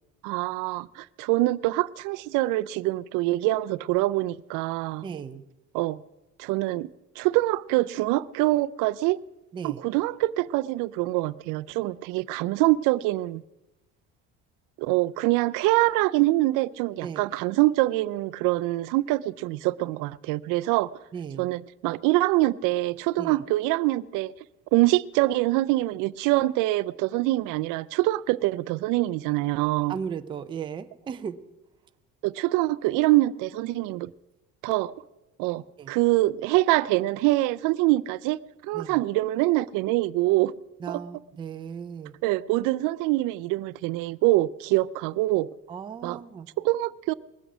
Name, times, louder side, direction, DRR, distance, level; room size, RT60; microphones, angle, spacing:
voice 1, 0.2-5.1 5.7-6.0 6.4-6.9 7.2-9.2 9.6-13.4 14.8-20.9 21.4-24.3 24.7-30.0 32.2-34.1 34.6-34.9 35.4-40.5 40.9-41.0 42.2-45.5 46.0-46.2 46.6-47.1, right 18 dB, 80° right, 0.5 m, -24 dB
voice 2, 5.0-5.4 9.5-9.8 17.0-17.2 21.1-21.5 23.2-23.3 29.9-31.4 35.8-35.9 38.7-39.0 40.8-42.1 45.7-46.5, right 7 dB, 15° right, 0.4 m, -36 dB
20.5 x 8.0 x 6.1 m
cardioid pair, 170°, 32 cm